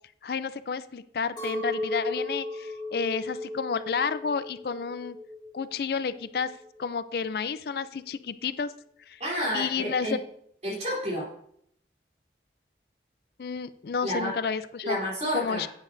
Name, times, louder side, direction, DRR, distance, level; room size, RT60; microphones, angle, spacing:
voice 1, 0.2-5.2 5.5-6.5 6.8-8.7 9.1-9.2 9.5-10.2 13.4-15.0 15.3-15.7, left 5 dB, 60° left, 14 dB, 0.4 m, -31 dB
Chink clink, 1.4-5.7 6.0-6.8, left 1 dB, 25° left, 2.2 m, -35 dB
voice 2, 9.2-10.2 10.6-11.3 14.0-14.3 14.8-15.7, equal, 40° right, -3 dB, 3.3 m, -30 dB
10.5 x 9.2 x 2.6 m, 0.68 s
head